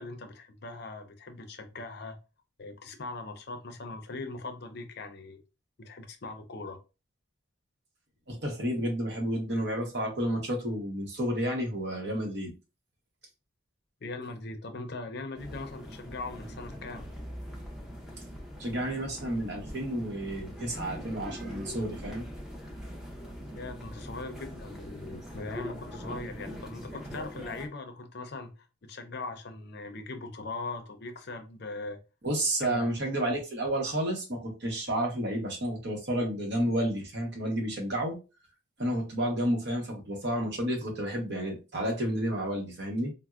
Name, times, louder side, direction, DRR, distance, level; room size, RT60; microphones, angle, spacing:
voice 1, 0.0-2.2 2.6-5.4 5.8-6.8 14.0-17.1 23.6-28.5 28.8-32.0 32.6-32.9, left 3 dB, 55° left, 0.5 m, -40 dB
voice 2, 8.3-12.5 18.6-22.3 32.2-38.2 38.8-43.1, right 1 dB, 55° right, 1.0 m, -31 dB
sound 1, 15.4-27.7, equal, ahead, 0.5 m, -42 dB
4.2 x 2.0 x 2.3 m
head